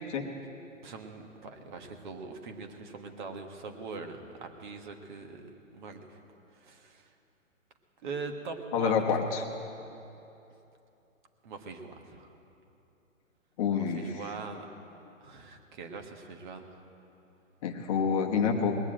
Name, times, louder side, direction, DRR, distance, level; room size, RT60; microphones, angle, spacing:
voice 1, 0.8-5.5 5.7-6.2 6.5-7.1 8.0-9.2 11.4-12.3 13.7-14.7 15.2-16.8, right 4 dB, 35° right, 5 dB, 1.4 m, -42 dB
voice 2, 8.7-9.4 13.6-14.1 17.6-18.8, left 6 dB, 25° left, 2 dB, 1.2 m, -27 dB
20.5 x 7.2 x 8.8 m, 2.8 s
hypercardioid pair, 150°, 41 cm